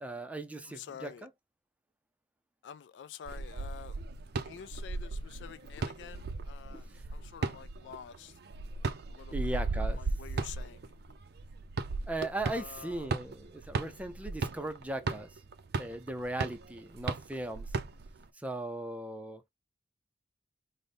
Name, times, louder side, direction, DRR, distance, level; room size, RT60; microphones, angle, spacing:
voice 1, 0.0-1.3 6.7-7.0 9.3-10.0 12.1-15.4 15.8-17.8 18.3-19.4, right 1 dB, 10° right, 0.5 m, -38 dB
voice 2, 0.8-1.3 2.6-4.0 4.4-8.3 9.1-9.6 10.0-10.9 12.5-13.1, left 8 dB, 70° left, 0.3 m, -48 dB
sound 1, 3.3-18.2, right 3 dB, 60° right, 0.4 m, -36 dB
3.9 x 2.1 x 3.3 m
head